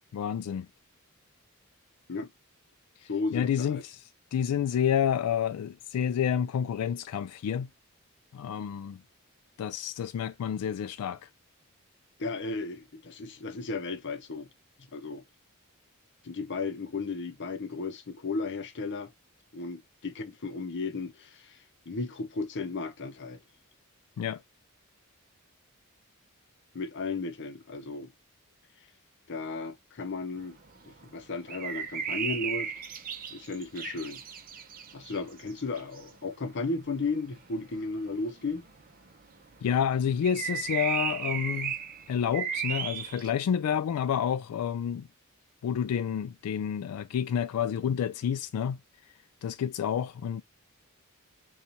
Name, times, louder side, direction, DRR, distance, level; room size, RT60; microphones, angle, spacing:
voice 1, 0.1-0.7 3.0-7.7 8.3-9.0 9.6-11.3 24.2-24.4 39.6-41.7 42.1-45.1 45.6-48.8 49.4-50.4, left 8 dB, 85° left, 0.3 m, -29 dB
voice 2, 3.0-3.8 12.2-14.5 14.9-15.2 16.2-19.1 19.5-23.4 26.7-28.1 29.3-30.6 30.9-32.7 33.3-34.2 34.9-38.6, left 3 dB, 55° left, 0.7 m, -34 dB
sound 1, 30.4-36.2 36.6-36.7 37.0-37.6 37.9-39.4 39.7-43.3, right 7 dB, 40° right, 0.7 m, -35 dB
6.7 x 2.4 x 2.8 m
head